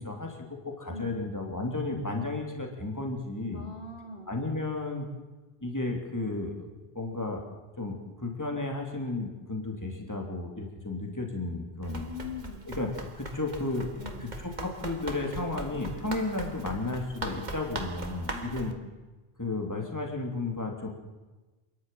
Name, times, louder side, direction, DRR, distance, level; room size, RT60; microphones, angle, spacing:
voice 1, 0.0-3.7 4.3-5.1 5.6-6.7 6.9-7.4 7.8-12.1 12.7-13.9 14.2-14.3 14.6-18.7 19.4-20.9, left 2 dB, 15° left, 1 dB, 3.2 m, -33 dB
voice 2, 0.9-1.2 3.5-4.3 11.9-12.7 14.0-14.2 18.3-18.9, left 4 dB, 85° left, 2 dB, 3.5 m, -42 dB
Run, 11.8-18.7, right 2 dB, 45° right, 1.9 m, -40 dB
27.5 x 11.5 x 9.3 m, 1.2 s
omnidirectional pair, 1.1 m